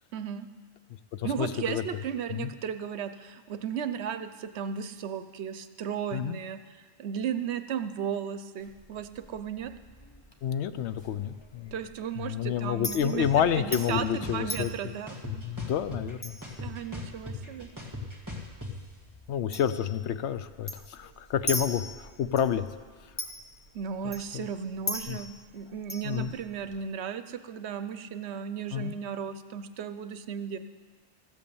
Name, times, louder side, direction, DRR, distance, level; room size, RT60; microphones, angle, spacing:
voice 1, 0.1-0.5 1.2-6.6 7.0-9.7 11.7-15.2 16.6-17.7 23.7-30.6, right 8 dB, 75° right, 11 dB, 0.9 m, -35 dB
voice 2, 1.1-1.8 2.3-2.5 6.1-6.4 10.4-11.7 12.2-14.9 15.2-16.4 19.3-22.7 24.0-24.4 25.1-25.2 26.0-26.3 28.7-28.9, left 9 dB, 75° left, 12 dB, 0.9 m, -29 dB
Chink clink, 8.6-26.8, left 1 dB, 25° left, 1.1 m, -42 dB
sound 1, 13.2-13.3 13.7-14.7 15.1-16.1 16.4-18.7, left 2 dB, 15° right, 1.8 m, -38 dB
14.0 x 8.3 x 7.0 m, 1.5 s
omnidirectional pair, 1.2 m